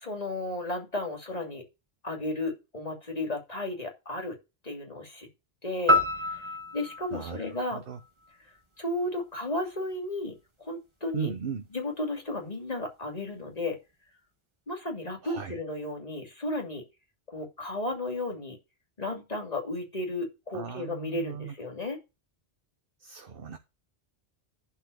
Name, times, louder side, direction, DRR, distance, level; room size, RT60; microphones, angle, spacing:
voice 1, 0.0-1.6 2.0-4.4 4.6-5.3 5.6-6.3 6.7-7.8 8.8-11.3 11.7-13.8 14.7-16.8 17.3-18.6 19.0-22.0, left 2 dB, 40° left, 2.8 m, -34 dB
sound 1, 5.9-8.3, left 1 dB, 25° right, 1.7 m, -28 dB
voice 2, 7.1-8.0 11.1-11.7 15.2-15.6 20.5-21.5 23.0-23.6, right 7 dB, 60° right, 1.2 m, -37 dB
11.5 x 4.2 x 6.8 m
omnidirectional pair, 1.1 m